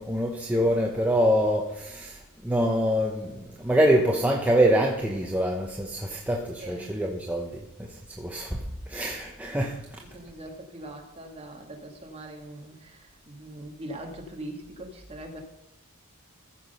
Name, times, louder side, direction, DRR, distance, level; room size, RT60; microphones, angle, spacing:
voice 1, 0.0-9.8, equal, 5° right, -1 dB, 0.9 m, -25 dB
voice 2, 10.1-15.4, right 1 dB, 25° right, 2 dB, 1.8 m, -41 dB
14.5 x 6.2 x 5.4 m, 0.89 s
head